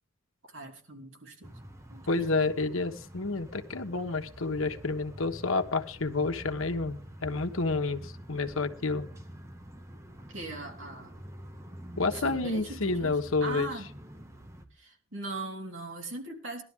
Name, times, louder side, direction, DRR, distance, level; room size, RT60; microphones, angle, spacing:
voice 1, 0.5-1.5 1.9-2.1 10.3-11.1 12.0-13.9 14.7-16.6, right 2 dB, 70° right, 1 dB, 3.3 m, -40 dB
sound 1, 1.4-14.7, equal, 15° right, 1.2 m, -47 dB
voice 2, 2.1-9.1 12.0-13.7, left 3 dB, 90° left, 7 dB, 1.3 m, -29 dB
19.0 x 12.0 x 3.6 m, 0.41 s
head